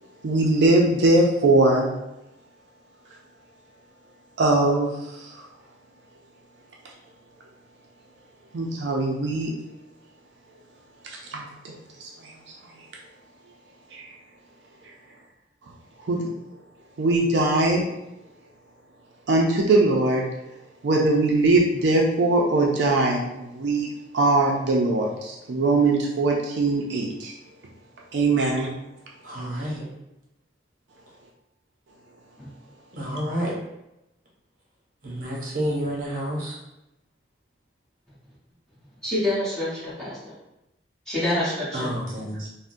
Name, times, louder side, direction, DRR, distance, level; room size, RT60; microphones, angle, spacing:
voice 1, 0.2-1.9 4.4-5.4 8.5-9.5 11.3-11.7 12.0-12.3 13.9-14.0 16.0-16.3 17.0-17.9 19.3-20.2 20.8-23.9 24.1-27.3 28.1-28.7, right 2 dB, 65° right, -1 dB, 0.4 m, -21 dB
voice 2, 29.2-29.8 32.9-33.6 35.0-36.6 41.7-42.5, equal, 45° right, -4 dB, 0.8 m, -29 dB
voice 3, 39.0-40.3 41.1-41.9, left 1 dB, 5° left, -10 dB, 1.1 m, -27 dB
3.5 x 2.1 x 2.5 m, 0.91 s
head